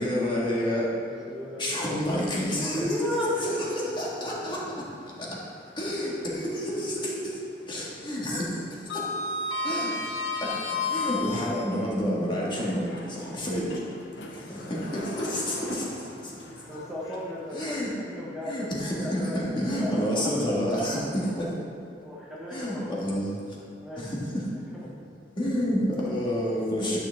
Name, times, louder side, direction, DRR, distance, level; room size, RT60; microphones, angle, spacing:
voice 1, 0.0-1.0 1.6-4.9 5.2-5.5 5.8-9.1 9.6-10.1 10.4-10.5 10.9-13.8 14.3-15.9 16.2-16.4 17.5-17.9 18.5-21.5 22.5-23.6 24.0-24.4 25.4-27.0, equal, 25° left, -5 dB, 1.8 m, -29 dB
voice 2, 1.1-1.8 2.6-3.8 10.0-10.1 14.1-14.7 15.7-15.8 16.6-19.4 19.7-21.5 22.0-23.0 23.7-24.1 24.6-24.9, equal, ahead, -7 dB, 1.2 m, -36 dB
Sliding door, 2.6-3.6 3.9-4.1 5.8-6.8 7.1-7.5 7.7-11.8 12.5-17.7, left 3 dB, 70° left, 1.0 m, -35 dB
11.5 x 6.9 x 3.6 m, 2.6 s
head